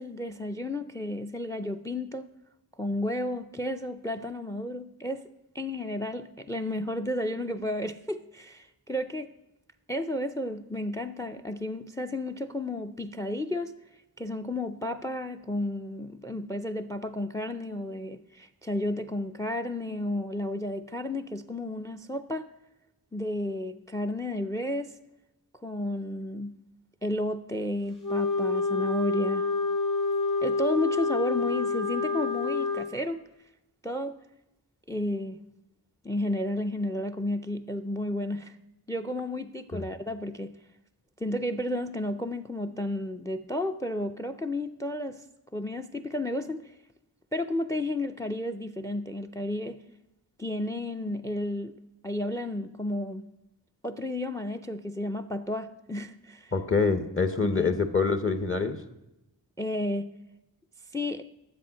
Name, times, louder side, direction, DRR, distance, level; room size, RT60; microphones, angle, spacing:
voice 1, 0.0-2.3 2.8-5.2 5.5-9.3 9.9-13.7 14.2-22.5 23.1-25.0 25.6-26.5 27.0-29.5 30.4-33.3 33.8-34.2 34.9-35.4 36.0-38.5 38.9-40.6 41.2-45.2 45.5-46.7 47.3-49.8 50.4-53.2 53.8-56.5 57.4-57.8 59.6-60.1 60.9-61.2, left 1 dB, 10° left, 0.4 m, -32 dB
Wind instrument woodwind instrument, 28.0-32.9, left 4 dB, 75° left, 2.6 m, -27 dB
voice 2, 56.5-58.8, left 4 dB, 30° left, 0.8 m, -26 dB
10.5 x 7.4 x 5.7 m
wide cardioid pair, 55°, 41 cm